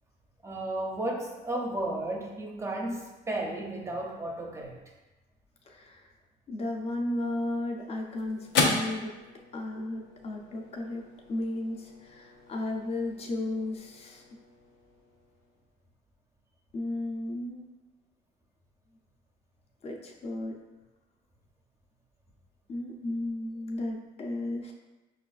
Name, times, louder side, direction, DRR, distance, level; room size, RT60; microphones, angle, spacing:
voice 1, 0.4-4.9, right 1 dB, 15° right, 1 dB, 0.5 m, -34 dB
voice 2, 5.7-6.1 6.5-9.1 9.5-11.0 11.3-14.2 16.7-17.7 19.8-20.6 22.7-24.7, left 2 dB, 35° left, 1 dB, 0.5 m, -34 dB
sound 1, 7.3-15.8, left 3 dB, 85° left, 0.6 m, -36 dB
5.0 x 2.4 x 2.3 m, 1.1 s
cardioid pair, 110°, 17 cm